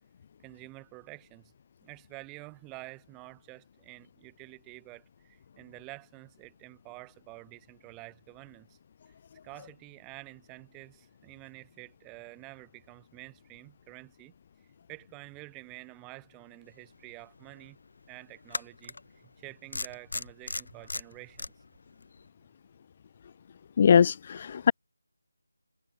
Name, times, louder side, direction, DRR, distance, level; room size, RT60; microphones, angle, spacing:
voice 1, 0.4-1.5 1.8-8.8 9.1-9.2 9.4-14.3 14.9-17.8 18.1-21.5, right 25 dB, 10° right, 3.7 m, -49 dB
sound 1, 17.1-17.2 18.5-19.0 19.7-21.5, left 3 dB, 65° left, 1.5 m, -35 dB
voice 2, 23.8-24.7, left 7 dB, 30° left, 0.3 m, -21 dB
figure-of-eight pair, 165°, 0 cm